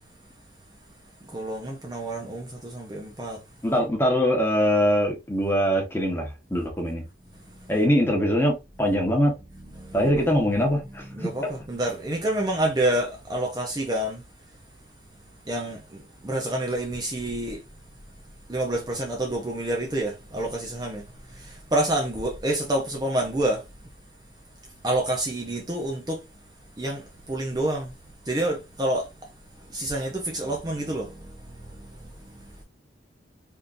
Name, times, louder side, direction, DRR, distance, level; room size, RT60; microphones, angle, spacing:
voice 1, 1.2-3.4 7.5-7.7 9.8-10.2 11.1-14.2 15.5-17.6 18.5-23.7 24.8-26.2 26.8-27.9 28.2-29.3 29.6-32.6, right 1 dB, 20° right, 0.5 m, -28 dB
voice 2, 3.6-7.1 7.7-9.3 9.9-11.3, equal, 10° left, 1.0 m, -23 dB
3.6 x 2.7 x 2.5 m
head